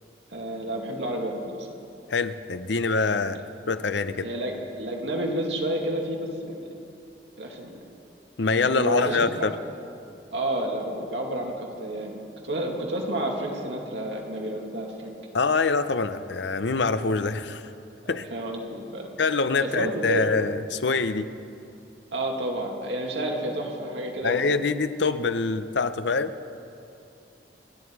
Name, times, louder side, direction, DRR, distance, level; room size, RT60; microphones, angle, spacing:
voice 1, 0.3-1.7 4.2-6.7 7.4-7.7 8.6-9.2 10.3-12.2 12.4-15.2 18.3-19.1 19.6-20.2 22.1-24.4, right 1 dB, 85° right, -1 dB, 2.4 m, -30 dB
voice 2, 2.1-3.4 3.7-4.3 8.4-9.6 15.3-17.7 18.1-18.3 19.2-21.3 24.2-26.3, left 4 dB, 80° left, 11 dB, 0.7 m, -25 dB
28.5 x 10.0 x 4.8 m, 2.7 s
head